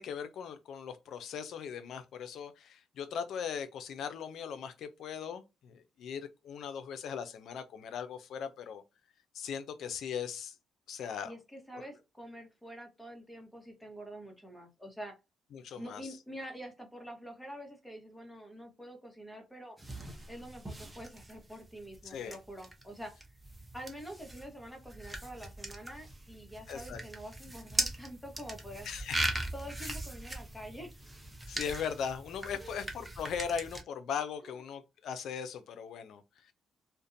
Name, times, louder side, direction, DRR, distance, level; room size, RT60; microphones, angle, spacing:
voice 1, 0.0-8.8 9.3-10.6 10.9-11.3 15.5-16.2 22.0-22.4 26.7-27.0 28.8-29.4 31.5-36.5, left 7 dB, 70° left, 0.4 m, -39 dB
voice 2, 11.2-15.1 15.8-19.8 20.3-23.1 23.7-28.9 29.5-30.9 32.6-32.9 34.4-34.6, equal, 5° left, 1.0 m, -46 dB
sound 1, 19.8-33.8, right 1 dB, 10° right, 0.7 m, -40 dB
2.5 x 2.1 x 2.5 m
cardioid pair, 90°, 0 cm